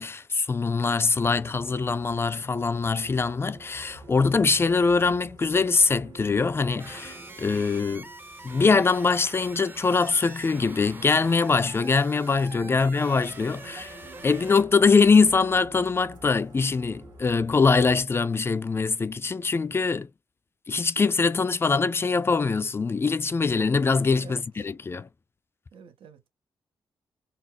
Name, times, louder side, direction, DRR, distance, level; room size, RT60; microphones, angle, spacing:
voice 1, 0.0-8.1 8.4-13.9 14.2-20.1 20.7-25.1, left 4 dB, 25° left, 0.3 m, -23 dB
sound 1, 1.1-18.0, right 2 dB, 55° right, 1.8 m, -49 dB
sound 2, 6.8-14.6, right 2 dB, 20° right, 0.6 m, -44 dB
voice 2, 25.7-26.3, right 6 dB, 80° right, 0.8 m, -48 dB
4.0 x 2.0 x 2.5 m
cardioid pair, 100°, 9 cm